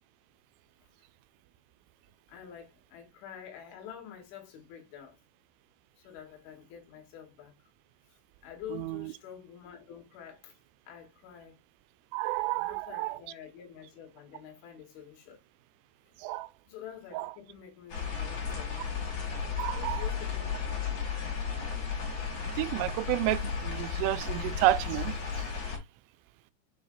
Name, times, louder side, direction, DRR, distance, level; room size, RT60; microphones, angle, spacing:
voice 1, 2.3-5.2 6.0-7.7 8.1-10.6 10.9-11.6 12.6-15.4 16.1-16.2 16.7-18.9 19.7-21.5, left 9 dB, 75° left, 3.9 m, -48 dB
voice 2, 8.7-9.1 12.1-13.2 16.2-16.5 17.1-17.3 19.6-20.0 22.6-25.1, right 16 dB, 90° right, 3.1 m, -30 dB
sound 1, 17.9-25.8, left 6 dB, 40° left, 4.4 m, -34 dB
8.7 x 4.8 x 2.3 m
omnidirectional pair, 5.6 m